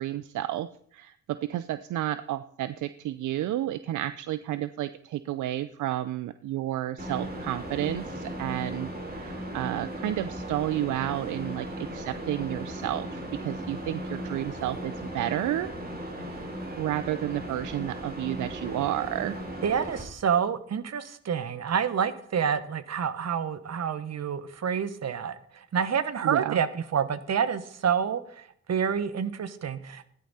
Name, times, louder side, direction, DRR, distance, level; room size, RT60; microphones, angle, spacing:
voice 1, 0.0-15.7 16.3-16.4 16.8-19.4 26.2-26.6, right 13 dB, 80° right, 14 dB, 0.6 m, -31 dB
sound 1, 7.0-20.0, right 1 dB, 30° right, 4.4 m, -37 dB
voice 2, 19.6-30.1, right 7 dB, 60° right, 13 dB, 1.3 m, -28 dB
14.0 x 11.0 x 4.2 m, 0.64 s
supercardioid pair, 50°, 30 cm